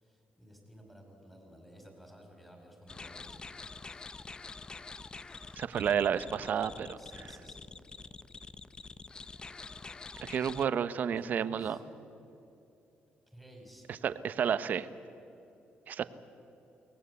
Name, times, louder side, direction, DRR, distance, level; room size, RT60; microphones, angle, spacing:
voice 1, 0.0-4.1 7.0-7.7 10.4-12.0 13.3-14.0, equal, 5° left, 2 dB, 4.8 m, -55 dB
sound 1, 2.9-10.7, left 4 dB, 25° left, 0.6 m, -46 dB
voice 2, 5.6-7.0 10.2-11.8 13.9-14.9 15.9-16.0, right 8 dB, 55° right, 13 dB, 0.9 m, -31 dB
23.0 x 18.5 x 8.2 m, 2.8 s
cardioid pair, 135°, 4 cm